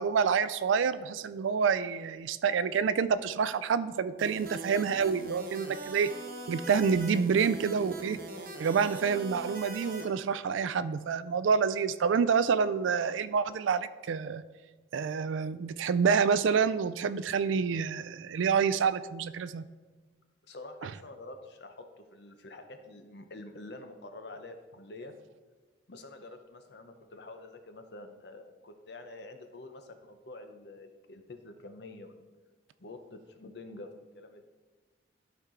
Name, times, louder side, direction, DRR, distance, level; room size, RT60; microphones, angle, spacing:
voice 1, 0.0-6.1 6.5-8.2 8.6-14.4 14.9-19.6 20.8-20.9, right 6 dB, 80° right, 14 dB, 0.3 m, -28 dB
sound 1, 4.2-10.0, right 2 dB, 45° right, 0.9 m, -42 dB
voice 2, 20.4-25.1 25.9-32.3 32.8-33.9 34.1-34.4, left 2 dB, 60° left, 7 dB, 0.7 m, -47 dB
12.0 x 4.5 x 3.7 m, 1.3 s
head